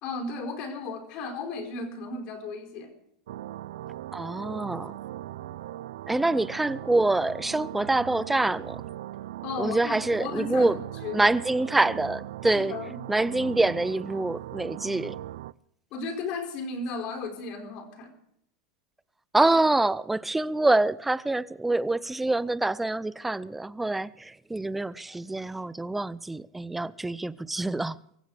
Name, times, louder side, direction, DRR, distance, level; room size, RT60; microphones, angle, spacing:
voice 1, 0.0-2.9 9.4-10.7 11.0-11.2 12.4-13.0 15.9-18.1, left 3 dB, 50° left, 4.8 m, -35 dB
sound 1, 3.3-15.5, right 13 dB, 85° right, 0.5 m, -39 dB
voice 2, 4.1-4.9 6.1-8.8 9.6-10.8 11.1-12.7 13.1-15.2 19.3-28.0, right 2 dB, 5° right, 0.5 m, -26 dB
24.5 x 15.0 x 3.5 m
supercardioid pair, 135°, 2 cm